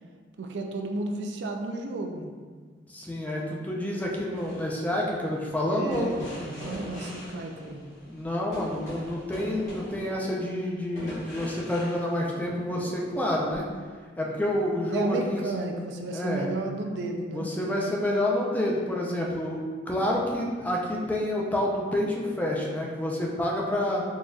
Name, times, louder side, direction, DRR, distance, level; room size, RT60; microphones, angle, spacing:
voice 1, 0.4-2.3 5.7-7.8 14.9-17.5, right 2 dB, 75° right, 3 dB, 0.4 m, -32 dB
voice 2, 2.9-6.2 8.1-13.7 14.2-15.4 16.1-16.5 17.3-24.0, left 1 dB, 10° left, -2 dB, 0.4 m, -28 dB
sound 1, 4.3-12.8 13.5-13.7, equal, 45° left, 1.2 m, -42 dB
3.9 x 2.5 x 2.3 m, 1.5 s
head